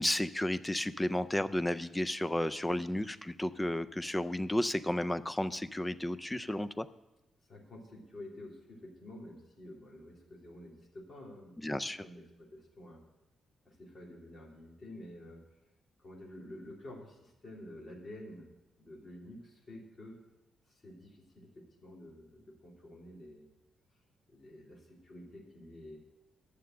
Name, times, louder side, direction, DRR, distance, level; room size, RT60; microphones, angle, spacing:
voice 1, 0.0-6.9 11.6-12.0, left 1 dB, 10° left, 13 dB, 0.4 m, -32 dB
voice 2, 7.5-11.6 12.0-13.0 13.6-15.4 16.0-18.5 18.8-20.2 20.7-23.5 24.3-26.0, left 1 dB, 30° left, -3 dB, 2.8 m, -50 dB
11.5 x 6.8 x 7.6 m, 0.98 s
wide cardioid pair, 160°, 0 cm